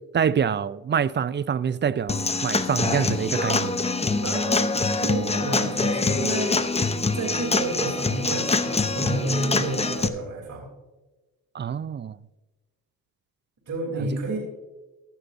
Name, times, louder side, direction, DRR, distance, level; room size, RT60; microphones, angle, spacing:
voice 1, 0.1-3.9 11.5-12.2 13.9-14.1, right 7 dB, 30° right, 0.4 m, -26 dB
Human voice / Acoustic guitar / Drum, 2.1-10.1, left 3 dB, 20° left, 0.7 m, -25 dB
voice 2, 4.2-4.7 5.0-6.8 7.1-10.7 13.7-14.4, right 2 dB, 55° right, 3.2 m, -30 dB
16.5 x 12.0 x 2.6 m
cardioid pair, 80°, 35 cm